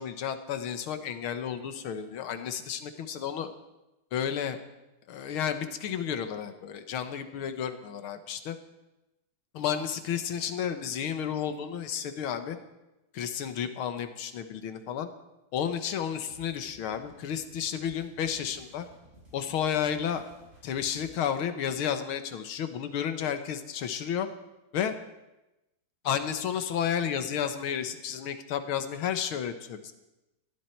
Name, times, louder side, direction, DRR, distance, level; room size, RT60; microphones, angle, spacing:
voice 1, 0.0-3.5 4.1-4.6 5.1-8.6 9.5-12.6 13.1-15.1 15.5-18.9 19.3-20.2 20.6-24.3 24.7-25.0 26.0-29.9, left 8 dB, 80° left, 9 dB, 2.0 m, -32 dB
sound 1, 15.6-21.1, right 1 dB, 30° right, 6.1 m, -57 dB
20.5 x 14.5 x 4.5 m, 0.98 s
omnidirectional pair, 2.3 m